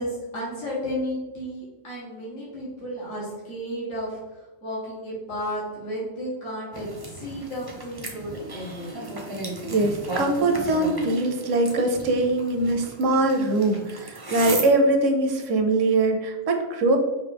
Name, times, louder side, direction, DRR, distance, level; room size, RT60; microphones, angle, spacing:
voice 1, 0.0-8.9, equal, 70° left, -7 dB, 1.9 m, -33 dB
sound 1, 6.7-14.7, right 1 dB, 25° right, 0.6 m, -35 dB
voice 2, 9.7-17.0, right 2 dB, 70° right, 4 dB, 1.0 m, -22 dB
5.7 x 2.7 x 3.4 m, 1.1 s
omnidirectional pair, 1.4 m